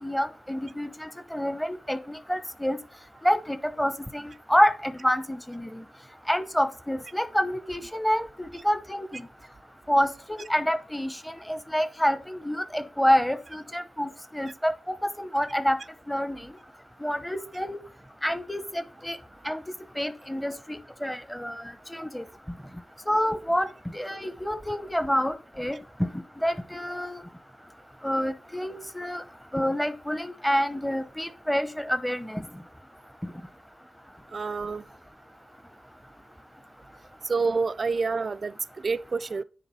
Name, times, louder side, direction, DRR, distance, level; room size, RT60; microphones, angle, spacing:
voice 1, 0.0-2.8 3.2-5.8 6.3-8.3 8.6-9.2 9.9-15.8 16.1-16.4 17.0-17.8 18.2-19.2 19.4-19.6 20.0-21.6 21.9-22.2 23.1-23.7 23.9-25.8 26.4-27.2 28.0-29.2 29.5-32.4 33.2-33.3, equal, 5° left, 0.8 m, -27 dB
voice 2, 34.3-34.8 37.2-39.4, right 4 dB, 45° right, 0.4 m, -28 dB
9.9 x 3.9 x 4.1 m
wide cardioid pair, 105°, 0 cm